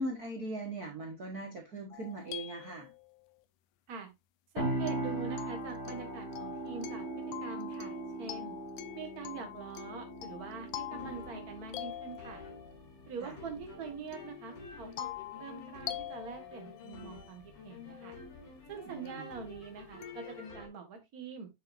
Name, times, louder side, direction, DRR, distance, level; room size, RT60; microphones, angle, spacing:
voice 1, 0.0-2.9 13.2-13.3 18.8-19.3, right 1 dB, 75° right, 0.8 m, -39 dB
sound 1, 1.9-3.4 4.9-12.8 14.1-17.5 19.1-19.2 20.0-20.5, left 14 dB, 75° left, 1.9 m, -45 dB
voice 2, 4.5-7.0 7.4-8.6 8.9-12.4 13.1-15.1 15.3-18.1 18.7-21.5, right 5 dB, 40° right, 1.4 m, -44 dB
sound 2, 4.6-14.3, right 2 dB, 35° left, 3.2 m, -40 dB
sound 3, 10.9-20.7, left 4 dB, 60° left, 4.2 m, -50 dB
8.8 x 6.7 x 2.6 m
omnidirectional pair, 4.1 m